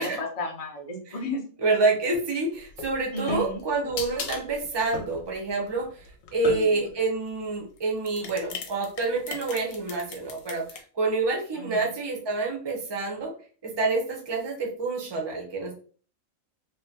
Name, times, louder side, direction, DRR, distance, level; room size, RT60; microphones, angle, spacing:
voice 1, 0.0-1.4 3.1-3.6 6.4-6.8 11.5-11.9, left 2 dB, 50° left, 2 dB, 0.4 m, -33 dB
voice 2, 1.6-13.3 13.6-15.7, right 3 dB, 30° right, 0 dB, 0.4 m, -27 dB
sound 1, 2.6-7.0 7.8-10.8, left 5 dB, 75° left, 1.0 m, -38 dB
3.0 x 2.1 x 2.7 m, 0.41 s
omnidirectional pair, 1.4 m